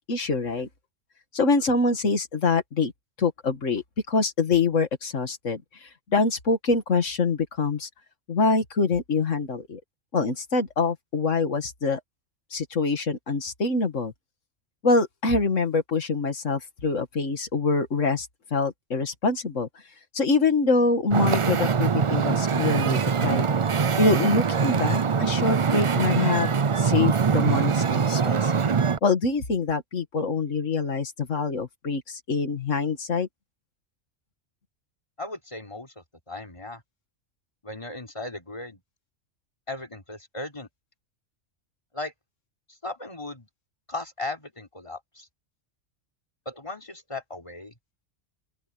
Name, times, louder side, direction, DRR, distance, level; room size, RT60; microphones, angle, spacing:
voice 1, 0.1-0.7 1.3-2.9 3.2-7.9 8.3-9.8 10.1-12.0 12.5-14.1 14.8-19.7 20.1-23.5 24.0-28.5 29.0-33.3, left 4 dB, 90° left, 2.2 m, -25 dB
Wind / Ocean, 21.1-29.0, right 6 dB, 40° right, 0.4 m, -23 dB
voice 2, 35.2-36.8 37.6-38.8 39.7-40.7 41.9-42.1 42.8-43.5 43.9-45.3 46.5-47.7, left 2 dB, 25° left, 4.2 m, -37 dB
open air
omnidirectional pair, 1.3 m